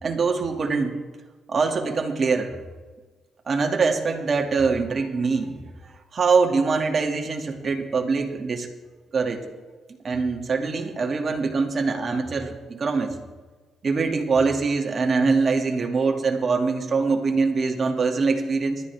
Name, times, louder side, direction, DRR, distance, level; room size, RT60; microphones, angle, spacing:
voice 1, 0.0-1.0 1.5-2.6 3.5-5.6 6.1-8.7 9.1-9.4 10.0-13.1 13.8-18.8, right 4 dB, 45° right, 2 dB, 2.4 m, -23 dB
27.5 x 13.0 x 3.6 m, 1.3 s
cardioid pair, 90°, 0 cm